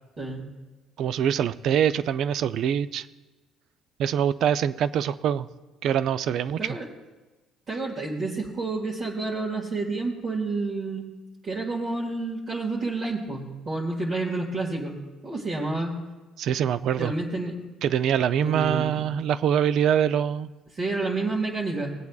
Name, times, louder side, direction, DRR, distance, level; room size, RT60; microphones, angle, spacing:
voice 1, 1.0-3.0 4.0-5.5 5.8-6.8 16.4-17.1 17.8-20.5, right 9 dB, 65° right, 14 dB, 0.4 m, -24 dB
voice 2, 7.7-11.1 11.4-15.0 15.2-16.0 17.0-17.5 18.4-19.0 20.7-21.9, right 3 dB, 45° right, -5 dB, 1.8 m, -29 dB
18.5 x 8.3 x 2.4 m, 1.2 s
cardioid pair, 105°, 0 cm